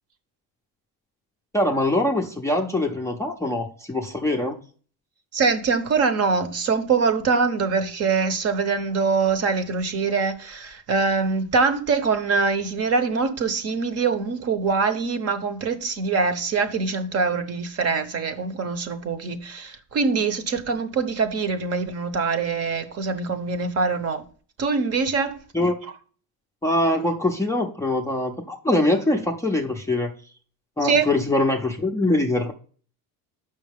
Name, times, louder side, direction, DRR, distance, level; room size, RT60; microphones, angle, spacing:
voice 1, 1.5-4.6 25.5-25.8 26.6-30.1 30.8-32.5, left 1 dB, 10° left, 0.5 m, -23 dB
voice 2, 5.3-24.2 24.6-25.4 30.8-31.1, right 4 dB, 40° right, 0.8 m, -23 dB
6.9 x 5.7 x 3.4 m
cardioid pair, 150°, 38 cm